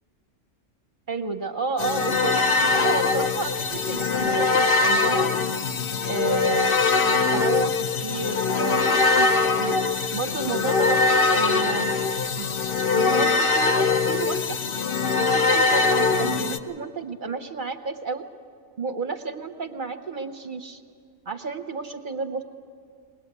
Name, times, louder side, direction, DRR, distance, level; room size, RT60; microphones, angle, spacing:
voice 1, 1.1-2.3 2.7-5.3 6.0-7.7 8.0-9.3 9.6-9.7 10.1-12.0 12.4-12.5 12.9-14.6 15.2-18.3 18.8-20.8 21.3-22.4, right 4 dB, 40° right, 7 dB, 0.8 m, -31 dB
sound 1, 1.8-16.6, left 4 dB, 50° left, 0.8 m, -22 dB
22.0 x 19.0 x 8.1 m, 2.3 s
omnidirectional pair, 1.5 m